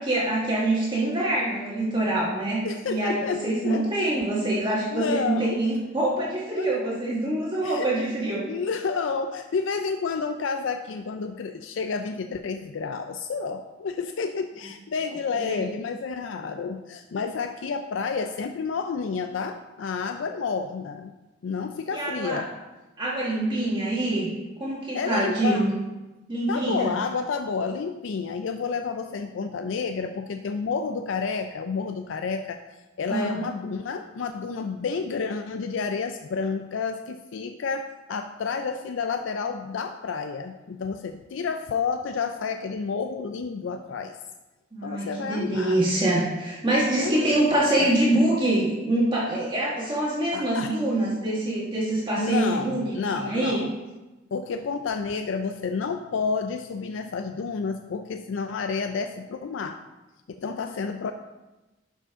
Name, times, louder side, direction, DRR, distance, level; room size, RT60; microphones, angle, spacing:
voice 1, 0.0-8.4 15.3-15.6 21.9-22.4 23.0-24.3 24.6-25.7 26.3-26.9 33.1-33.4 44.7-53.6, right 1 dB, 25° right, -6 dB, 1.5 m, -25 dB
voice 2, 2.6-3.8 4.9-5.6 6.6-6.7 7.6-7.9 8.5-21.1 21.4-22.5 24.9-25.7 26.5-32.6 33.0-44.2 44.8-45.8 47.0-47.9 50.3-50.7 52.2-53.7 54.3-59.8 60.4-61.1, left 5 dB, 80° left, 7 dB, 0.4 m, -30 dB
11.0 x 5.2 x 3.6 m, 1.1 s
head